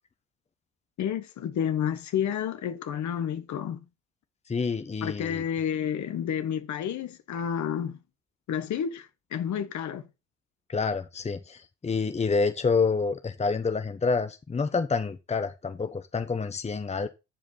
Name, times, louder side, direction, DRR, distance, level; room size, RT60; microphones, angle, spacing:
voice 1, 1.0-3.8 5.0-8.0 8.5-10.1, left 8 dB, 50° left, 1.5 m, -30 dB
voice 2, 4.5-5.4 10.7-17.1, left 4 dB, 20° left, 1.1 m, -28 dB
14.5 x 5.1 x 4.2 m
hypercardioid pair, 60°, 36 cm